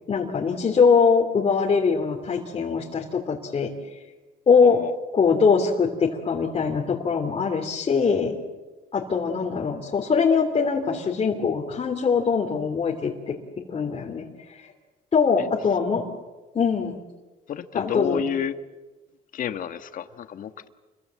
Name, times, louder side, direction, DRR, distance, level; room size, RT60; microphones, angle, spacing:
voice 1, 0.1-3.7 4.5-4.8 5.1-8.3 8.9-13.4 13.7-14.3 14.6-14.7 15.1-16.1 16.5-17.0 17.7-18.2, left 5 dB, 35° left, -1 dB, 3.2 m, -22 dB
voice 2, 17.5-18.5 19.3-20.7, left 8 dB, 55° left, 9 dB, 1.6 m, -30 dB
29.0 x 22.5 x 7.8 m, 1.2 s
cardioid pair, 110°, 17 cm